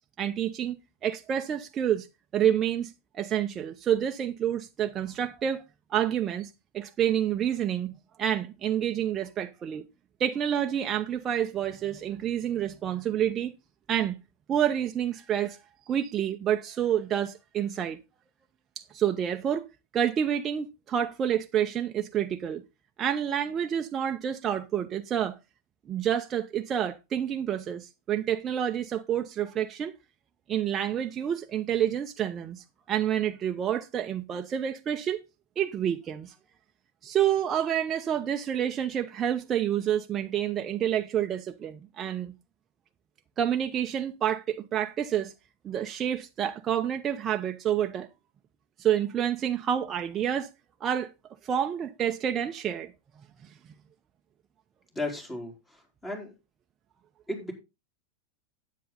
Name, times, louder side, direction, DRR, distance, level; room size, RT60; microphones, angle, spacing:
voice 1, 0.2-2.1 2.3-5.6 5.9-9.8 10.2-13.5 13.9-14.2 14.5-15.6 15.9-18.0 18.8-19.7 19.9-22.6 23.0-25.4 25.9-29.9 30.5-35.2 35.6-36.3 37.0-42.3 43.4-45.3 45.6-48.1 48.8-50.5 50.8-51.1 51.4-52.9, right 9 dB, 30° right, 0.8 m, -28 dB
voice 2, 54.9-56.3 57.3-57.5, left 1 dB, 15° left, 4.1 m, -35 dB
10.0 x 8.4 x 3.9 m
figure-of-eight pair, 90°, 0 cm